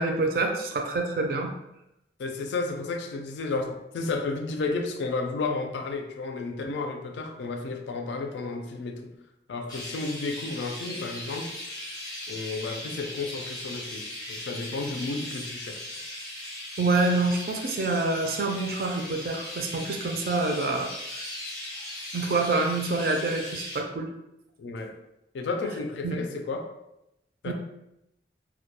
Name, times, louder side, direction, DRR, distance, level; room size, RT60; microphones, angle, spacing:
voice 1, 0.0-1.5 16.8-20.9 22.1-24.1 26.0-26.2 27.4-27.5, right 3 dB, 55° right, 3 dB, 0.3 m, -26 dB
voice 2, 2.2-9.1 9.5-11.5 12.3-15.9 24.6-24.9 25.3-26.7 27.4-27.5, left 3 dB, 85° left, 4 dB, 0.4 m, -32 dB
Chirp tweet, 9.7-23.8, left 1 dB, 20° left, 0.5 m, -38 dB
2.2 x 2.1 x 2.8 m, 0.86 s
head